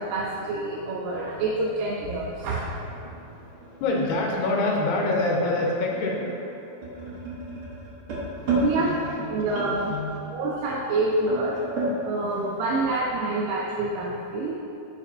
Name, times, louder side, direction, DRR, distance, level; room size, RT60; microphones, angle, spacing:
voice 1, 0.0-3.0 8.6-11.6 12.0-14.5, right 2 dB, 80° right, -2 dB, 2.0 m, -27 dB
sound 1, 2.6-12.0, right 2 dB, 60° right, 1.4 m, -34 dB
voice 2, 3.2-6.2 8.4-8.7 9.3-10.2, left 2 dB, 85° left, -1 dB, 2.8 m, -27 dB
6.3 x 5.0 x 5.3 m, 2.9 s
omnidirectional pair, 4.5 m